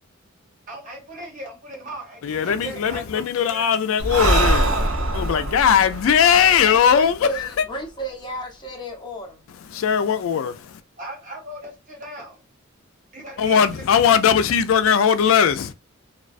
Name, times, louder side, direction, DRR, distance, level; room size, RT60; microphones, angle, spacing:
voice 1, 0.7-3.8 6.2-6.8 11.0-12.4 13.1-13.6, right 1 dB, 40° right, 0.9 m, -37 dB
voice 2, 2.2-4.9 5.1-7.7 9.6-10.8 13.4-15.7, left 7 dB, 75° left, 0.3 m, -19 dB
Breathing, 4.0-7.5, right 2 dB, 75° right, 0.6 m, -23 dB
voice 3, 6.9-9.4, right 2 dB, 20° left, 0.6 m, -33 dB
2.3 x 2.2 x 2.4 m
head